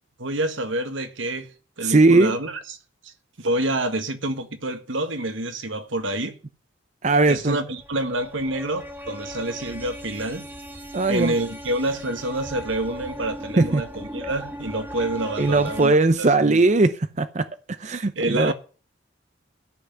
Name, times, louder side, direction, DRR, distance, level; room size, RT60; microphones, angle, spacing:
voice 1, 0.2-1.5 1.8-2.6 3.0-3.1 3.4-6.4 7.3-10.5 11.1-16.0 16.4-16.6 18.1-18.5, right 1 dB, 80° right, 1.6 m, -27 dB
voice 2, 1.8-2.3 7.0-7.6 10.9-11.3 13.6-13.8 15.4-18.5, right 3 dB, 35° right, 0.6 m, -19 dB
sound 1, 7.8-15.9, equal, 10° right, 1.5 m, -38 dB
13.0 x 5.9 x 9.1 m
head